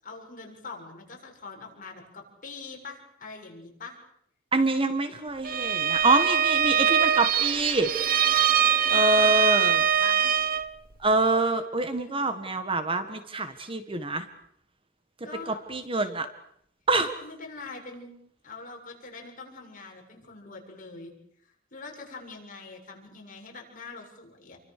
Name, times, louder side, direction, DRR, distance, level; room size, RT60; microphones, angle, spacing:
voice 1, 0.0-4.0 8.6-10.2 15.2-15.6 17.2-18.2 18.4-21.1 21.7-24.6, left 4 dB, 45° left, 1 dB, 7.5 m, -43 dB
voice 2, 4.5-7.9 8.9-9.8 11.0-14.2 15.5-16.3 16.9-17.1, right 2 dB, 25° right, 9 dB, 1.6 m, -25 dB
Bowed string instrument, 5.4-10.7, right 9 dB, 45° right, 1.2 m, -23 dB
29.5 x 24.5 x 6.8 m, 0.73 s
head